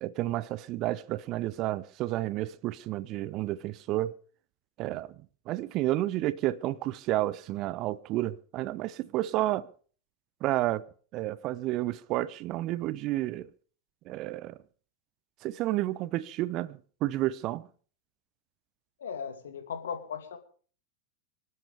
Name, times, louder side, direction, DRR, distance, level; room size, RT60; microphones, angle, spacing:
voice 1, 0.0-4.1 4.8-5.1 5.5-9.7 10.4-10.8 11.1-13.5 14.1-14.6 15.4-17.7, right 15 dB, 40° right, 0.8 m, -31 dB
voice 2, 19.0-20.4, left 7 dB, 65° left, 2.7 m, -37 dB
25.5 x 12.5 x 3.5 m
figure-of-eight pair, 90°, 0 cm